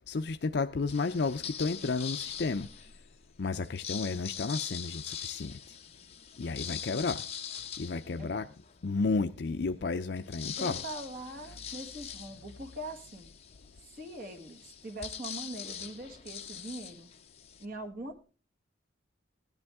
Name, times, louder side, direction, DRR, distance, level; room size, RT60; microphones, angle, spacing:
voice 1, 0.1-2.7 3.4-5.5 6.4-7.2 7.8-8.5 8.8-10.9, left 4 dB, 55° left, 0.5 m, -32 dB
sound 1, 0.9-3.0 3.6-8.8 9.3-9.4 9.6-17.6, left 8 dB, 30° left, 1.1 m, -42 dB
voice 2, 10.6-13.3 14.0-17.1 17.6-18.2, right 1 dB, 45° right, 1.8 m, -42 dB
17.0 x 10.5 x 3.5 m
head